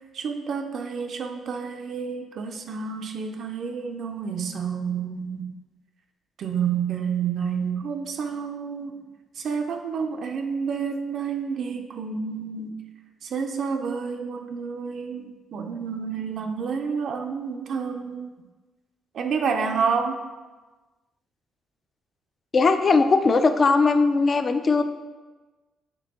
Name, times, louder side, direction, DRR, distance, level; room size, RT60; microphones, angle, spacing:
voice 1, 0.1-5.5 6.4-9.0 9.4-12.8 13.2-18.3 19.1-20.2, right 6 dB, 65° right, 4 dB, 0.4 m, -29 dB
voice 2, 22.5-24.8, left 4 dB, 40° left, 8 dB, 0.3 m, -19 dB
5.1 x 3.4 x 2.9 m, 1.2 s
cardioid pair, 90°, 0 cm